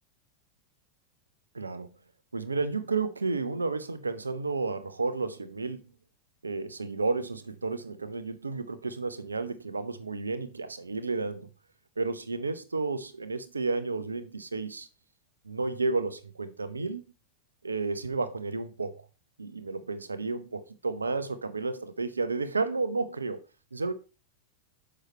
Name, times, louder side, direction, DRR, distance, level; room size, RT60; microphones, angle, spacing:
voice 1, 1.5-1.9 2.3-5.8 6.4-11.5 12.0-14.9 15.4-17.0 17.6-19.0 19.4-23.4 23.7-23.9, right 3 dB, 75° right, 0.8 m, -32 dB
6.5 x 6.1 x 4.3 m
figure-of-eight pair, 90°, 0 cm